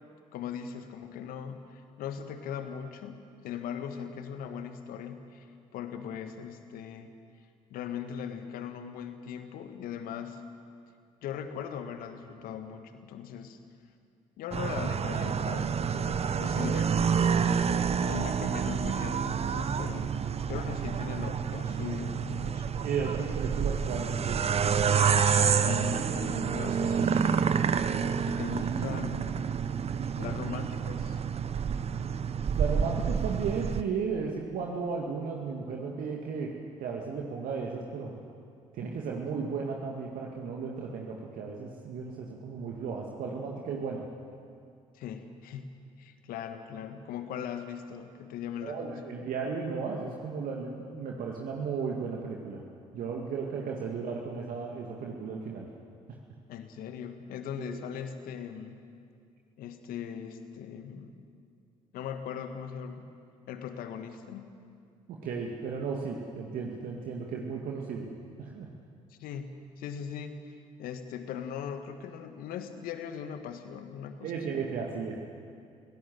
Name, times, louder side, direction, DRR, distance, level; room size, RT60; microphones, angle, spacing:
voice 1, 0.3-7.1 7.7-10.4 11.2-13.6 14.4-17.4 18.0-20.2 20.5-22.8 25.6-27.5 28.2-29.6 30.2-31.2 44.9-45.7 46.0-49.0 56.5-58.8 59.6-61.2 61.9-63.1 63.5-64.6 69.1-69.5 69.8-74.5, left 8 dB, 65° left, 8 dB, 1.7 m, -39 dB
sound 1, 14.5-33.8, right 7 dB, 40° right, 1.0 m, -28 dB
voice 2, 21.7-22.0 22.8-24.4 32.6-36.5 36.8-38.1 38.7-44.0 48.6-52.6 52.9-55.7 57.6-57.8 65.1-68.1 68.4-68.7 74.2-75.2, right 5 dB, 60° right, -1 dB, 2.2 m, -35 dB
24.0 x 17.5 x 7.8 m, 2.3 s
hypercardioid pair, 50°, 16 cm